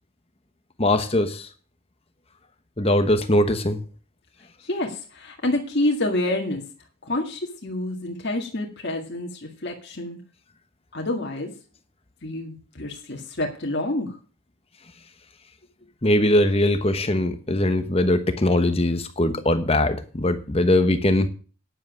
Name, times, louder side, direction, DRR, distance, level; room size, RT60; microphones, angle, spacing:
voice 1, 0.8-1.5 2.8-3.8 16.0-21.3, left 1 dB, 25° left, 10 dB, 1.0 m, -21 dB
voice 2, 4.6-6.6 7.0-10.2 10.9-11.6 12.2-14.2, left 1 dB, 50° left, 1 dB, 1.9 m, -28 dB
10.0 x 7.6 x 6.4 m, 0.38 s
head